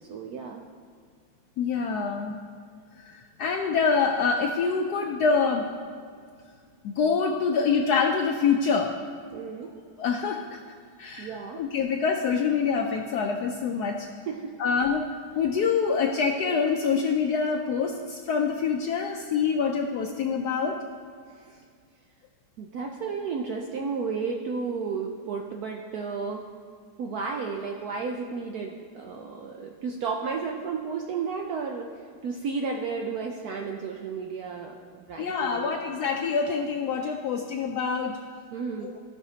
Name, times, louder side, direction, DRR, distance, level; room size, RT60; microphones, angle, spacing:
voice 1, 0.0-0.7 9.3-9.7 11.2-11.6 14.3-14.5 21.4-21.6 22.6-26.4 27.0-31.9 32.2-35.7 38.5-38.9, right 5 dB, 75° right, 2 dB, 0.9 m, -33 dB
voice 2, 1.6-2.4 3.0-5.7 6.8-9.0 10.0-10.6 11.0-14.1 14.6-15.0 15.3-20.8 35.2-38.2 38.8-38.9, left 5 dB, 75° left, 3 dB, 0.9 m, -26 dB
15.0 x 5.8 x 2.8 m, 2.1 s
omnidirectional pair, 2.2 m